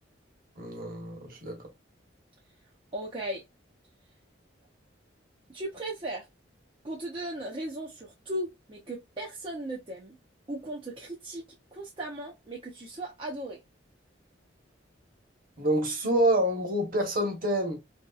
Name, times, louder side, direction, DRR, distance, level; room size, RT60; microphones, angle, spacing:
voice 1, 0.6-1.7 15.6-17.8, right 1 dB, 50° right, 1.1 m, -27 dB
voice 2, 2.9-3.4 5.5-6.3 6.8-10.2 10.5-11.4 11.7-13.6, right 1 dB, 30° right, 0.6 m, -37 dB
2.8 x 2.8 x 2.3 m
head